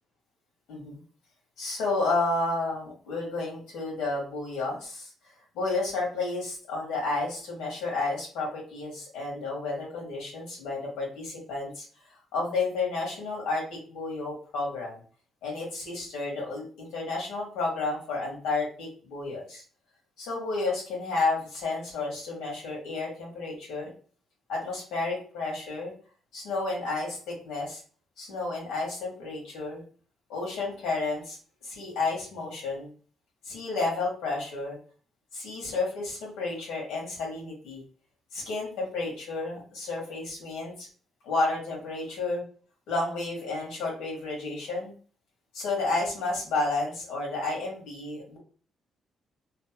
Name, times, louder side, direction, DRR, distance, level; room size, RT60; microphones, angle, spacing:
voice 1, 0.7-1.0 1.6-5.1 5.5-11.8 12.3-15.0 15.4-19.6 20.2-23.9 24.5-25.9 26.3-27.8 28.2-29.8 30.3-31.4 31.6-32.9 33.4-34.8 35.3-37.8 38.3-40.9 41.2-42.4 42.9-44.9 45.5-48.4, left 3 dB, 90° left, -3 dB, 1.5 m, -31 dB
3.2 x 2.1 x 2.9 m, 0.41 s
cardioid pair, 90°, 0 cm